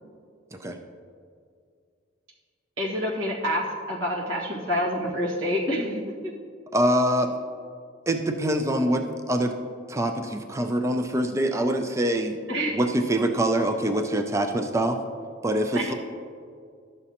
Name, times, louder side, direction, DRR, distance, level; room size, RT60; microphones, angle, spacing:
voice 1, 2.8-6.3 12.5-12.8 15.7-15.9, equal, 85° right, -3 dB, 1.6 m, -27 dB
voice 2, 6.7-7.4 8.1-9.5 9.9-12.4 12.7-15.0 15.4-15.9, right 1 dB, 15° right, 5 dB, 0.4 m, -24 dB
12.0 x 7.0 x 2.8 m, 2.2 s
head